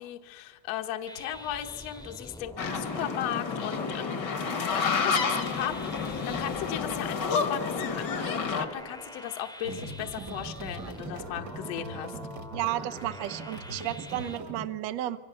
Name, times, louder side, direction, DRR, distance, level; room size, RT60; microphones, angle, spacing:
voice 1, 0.0-4.3 4.7-12.2, left 11 dB, 60° left, 5 dB, 1.7 m, -36 dB
sound 1, 1.1-14.4, equal, 5° left, 0.6 m, -45 dB
sound 2, 2.6-8.7, left 5 dB, 45° left, 1.4 m, -30 dB
sound 3, 9.6-14.6, right 2 dB, 45° right, 1.4 m, -41 dB
voice 2, 12.5-15.2, right 13 dB, 80° right, 11 dB, 1.5 m, -33 dB
28.0 x 24.5 x 7.0 m, 1.3 s
omnidirectional pair, 4.3 m